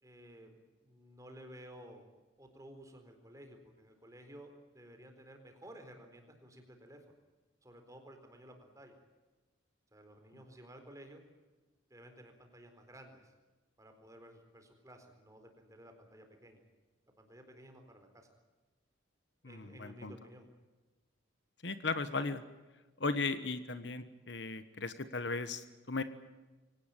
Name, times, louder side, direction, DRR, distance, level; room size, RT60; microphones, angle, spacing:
voice 1, 0.0-2.1 2.4-7.2 7.6-9.0 9.9-11.2 11.9-13.3 13.8-16.6 17.2-18.3 19.4-20.5, equal, 15° right, 5 dB, 4.1 m, -54 dB
voice 2, 19.4-20.1 21.6-22.4 23.0-26.0, left 3 dB, 60° left, 11 dB, 1.3 m, -36 dB
24.5 x 18.0 x 9.1 m, 1.2 s
head